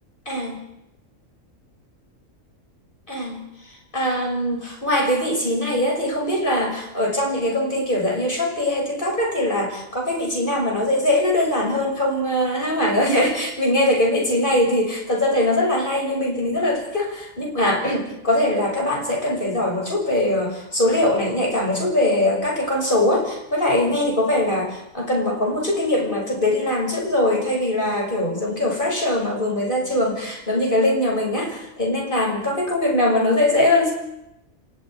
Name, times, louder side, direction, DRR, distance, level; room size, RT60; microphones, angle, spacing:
voice 1, 0.3-0.6 3.1-33.9, left 1 dB, 40° left, 0 dB, 6.7 m, -22 dB
29.5 x 28.0 x 4.9 m, 0.84 s
omnidirectional pair, 1.4 m